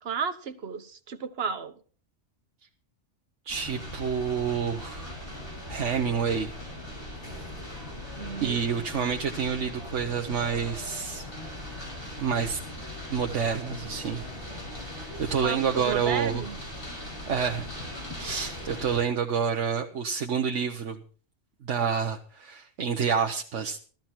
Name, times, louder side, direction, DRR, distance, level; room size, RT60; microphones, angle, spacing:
voice 1, 0.0-1.7 8.1-8.7 15.4-16.6, right 6 dB, 60° right, 1.3 m, -33 dB
sound 1, 3.5-19.0, left 1 dB, 50° left, 6.3 m, -39 dB
voice 2, 3.5-5.2 5.7-6.5 8.4-11.3 12.2-12.6 13.1-14.3 15.0-16.4 17.3-17.7 18.2-21.0 21.6-23.8, right 6 dB, 90° right, 1.3 m, -28 dB
15.0 x 13.5 x 4.5 m
omnidirectional pair, 1.2 m